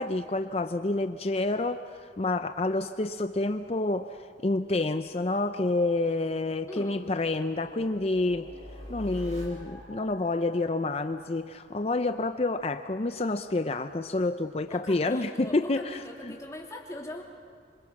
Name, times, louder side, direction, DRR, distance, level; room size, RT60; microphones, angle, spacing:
voice 1, 0.0-8.5 8.9-16.3, left 2 dB, 35° left, 9 dB, 0.5 m, -28 dB
sound 1, 6.5-12.3, equal, 40° right, 6.0 m, -46 dB
voice 2, 6.7-7.2 14.7-17.2, left 1 dB, 15° left, -1 dB, 2.8 m, -41 dB
27.0 x 25.5 x 5.9 m, 2.1 s
head